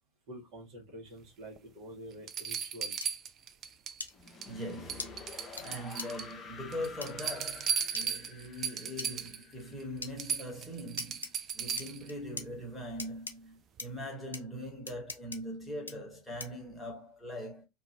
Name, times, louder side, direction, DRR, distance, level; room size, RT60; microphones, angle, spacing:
voice 1, 0.3-3.0, right 1 dB, 50° right, 1.3 m, -47 dB
sound 1, 1.6-1.7 2.3-4.0 4.3-4.6 4.9-6.3 6.7-9.4 9.8-9.9 10.2-12.1 13.8-13.9, right 7 dB, 35° right, 0.3 m, -36 dB
sound 2, 3.0-3.1 4.0-4.1 5.0-5.1 5.6-5.7 6.0-6.1 7.0-7.1 7.9-8.1 9.0-9.1 10.0-10.1 11.0-11.3 11.8-12.5 13.0-13.3 13.8-13.9 14.3-14.4 14.9-15.4 15.9-16.0 16.4-16.6, left 3 dB, 80° left, 0.4 m, -40 dB
sound 3, 4.1-11.0, left 5 dB, 25° left, 0.6 m, -50 dB
voice 2, 4.5-11.3 11.5-17.7, equal, 5° left, 1.3 m, -41 dB
2.6 x 2.6 x 2.7 m
figure-of-eight pair, 80°, 0 cm